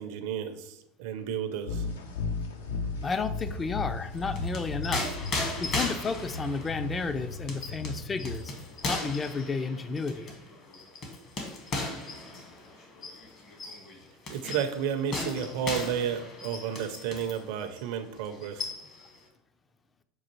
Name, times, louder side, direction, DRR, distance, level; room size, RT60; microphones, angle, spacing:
voice 1, 0.0-1.8 14.3-18.7, right 8 dB, 65° right, 8 dB, 0.4 m, -32 dB
sound 1, 1.7-9.1, left 3 dB, 80° left, 0.5 m, -36 dB
voice 2, 3.0-5.1 5.3-8.5 8.9-10.3, left 4 dB, 25° left, 10 dB, 0.3 m, -32 dB
sound 2, 4.1-17.4 17.8-17.9 18.2-19.1, left 2 dB, 45° left, 1.2 m, -37 dB
6.1 x 2.4 x 3.0 m, 0.79 s
hypercardioid pair, 85°, 0 cm